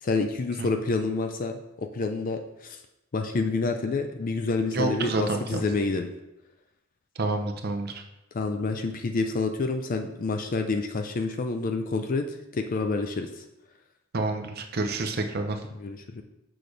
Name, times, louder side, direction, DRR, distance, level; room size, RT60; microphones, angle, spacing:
voice 1, 0.0-2.8 3.1-6.1 8.3-13.4 15.8-16.2, left 3 dB, 45° left, 6 dB, 0.4 m, -28 dB
voice 2, 4.7-5.6 7.2-8.0 14.1-15.6, right 2 dB, 55° right, 5 dB, 0.7 m, -28 dB
6.8 x 6.2 x 3.3 m, 0.92 s
head